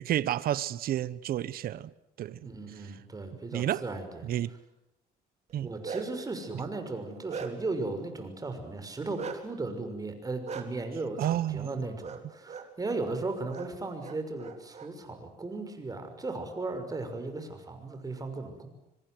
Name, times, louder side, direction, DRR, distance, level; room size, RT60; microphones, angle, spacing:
voice 1, 0.0-1.9 2.2-2.5 3.5-3.8 4.2-4.5 5.5-5.7 6.5-6.6 11.2-11.8, right 12 dB, 60° right, 1.0 m, -30 dB
voice 2, 2.4-4.3 5.6-18.7, right 3 dB, 20° right, 6.0 m, -36 dB
Bark, 5.5-6.3 6.8-7.8 9.2-9.4 10.5-10.6 12.0-12.2 12.5-12.7 13.5-13.7 14.0-14.9, right 6 dB, 40° right, 3.9 m, -39 dB
25.5 x 24.5 x 7.9 m
cardioid pair, 110°, 17 cm